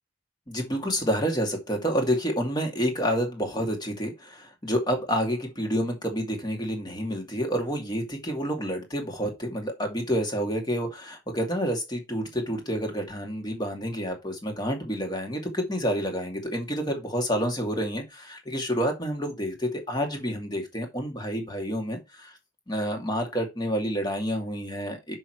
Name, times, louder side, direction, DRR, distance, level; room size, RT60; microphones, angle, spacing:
voice 1, 0.5-22.3 22.7-25.2, equal, 20° left, 2.4 m, -29 dB
6.9 x 6.3 x 4.6 m
head